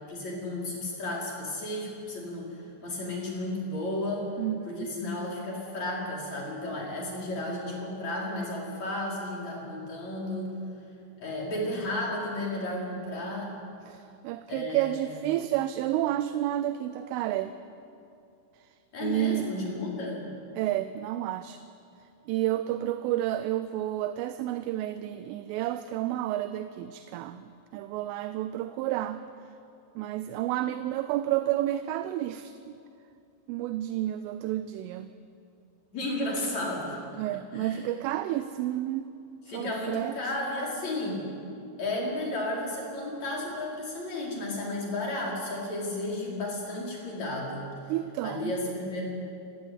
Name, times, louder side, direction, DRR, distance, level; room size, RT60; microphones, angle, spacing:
voice 1, 0.1-4.3 4.7-10.5 11.2-13.5 14.5-15.2 18.9-20.3 35.9-37.0 37.5-37.9 39.5-41.2 41.8-47.7 48.2-49.0, left 1 dB, 35° left, -3 dB, 5.9 m, -33 dB
voice 2, 4.4-4.9 13.9-17.5 18.6-18.7 19.0-19.5 20.6-21.6 22.3-29.2 30.0-32.8 33.5-35.1 37.2-39.1 39.5-40.3 47.9-48.6, right 13 dB, 85° right, 11 dB, 3.2 m, -30 dB
29.5 x 15.5 x 9.7 m, 2.5 s
omnidirectional pair, 5.8 m